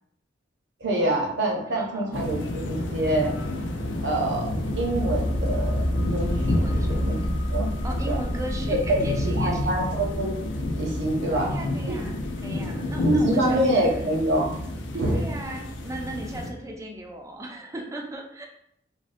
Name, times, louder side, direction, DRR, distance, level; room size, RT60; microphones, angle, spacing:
voice 1, 0.8-3.3 4.0-4.5 4.8-5.8 6.1-7.1 7.5-7.7 8.1-8.2 8.7-10.4 10.8-11.5 11.9-12.0 13.0-14.6 14.9-15.2, right 1 dB, 75° right, 0 dB, 0.7 m, -25 dB
voice 2, 1.6-2.2 6.5-7.1 7.8-9.8 11.2-14.0 15.1-18.5, right 1 dB, 15° right, 2 dB, 0.3 m, -37 dB
sound 1, 2.1-16.5, left 1 dB, 90° left, 0.4 m, -30 dB
sound 2, 4.7-16.0 16.3-16.4, equal, 35° left, 0.8 m, -31 dB
3.4 x 2.1 x 2.5 m, 0.72 s
head